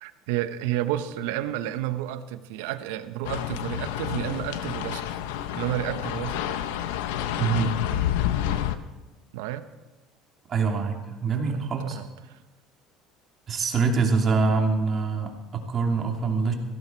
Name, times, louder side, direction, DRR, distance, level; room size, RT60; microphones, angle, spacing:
voice 1, 0.0-5.1 5.5-6.6 9.3-9.7 11.3-12.4, right 13 dB, 80° right, 11 dB, 1.0 m, -31 dB
sound 1, 3.2-8.7, left 11 dB, 85° left, 0.9 m, -29 dB
voice 2, 7.4-7.8 10.5-12.0 13.5-16.5, right 4 dB, 40° right, 2 dB, 2.9 m, -25 dB
17.0 x 15.5 x 4.6 m, 1.2 s
supercardioid pair, 95°, 0 cm